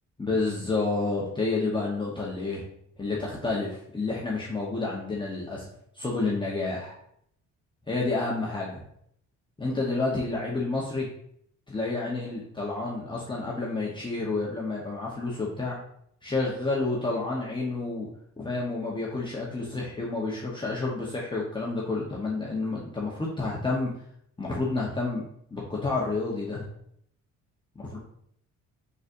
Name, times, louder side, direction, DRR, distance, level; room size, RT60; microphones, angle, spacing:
voice 1, 0.2-2.6 3.0-5.7 5.9-6.9 7.9-8.8 9.6-11.1 11.7-15.8 16.2-18.1 18.4-23.9 24.4-25.2 25.5-26.6 27.8-28.0, left 3 dB, 15° left, -5 dB, 1.0 m, -29 dB
5.2 x 4.0 x 2.6 m, 0.69 s
cardioid pair, 90°, 30 cm